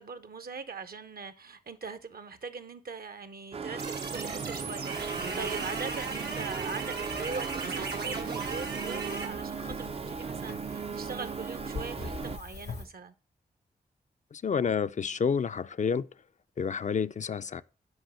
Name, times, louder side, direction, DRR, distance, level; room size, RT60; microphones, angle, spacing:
voice 1, 0.0-13.1, right 5 dB, 65° right, 0.7 m, -41 dB
sound 1, 3.5-12.4, right 6 dB, 35° right, 0.4 m, -37 dB
sound 2, 3.8-9.3, right 4 dB, 90° right, 1.1 m, -37 dB
sound 3, 4.9-12.9, left 4 dB, 80° left, 1.0 m, -45 dB
voice 2, 14.3-16.1 16.6-17.6, left 6 dB, 50° left, 0.4 m, -29 dB
6.3 x 4.8 x 5.7 m
cardioid pair, 50°, 17 cm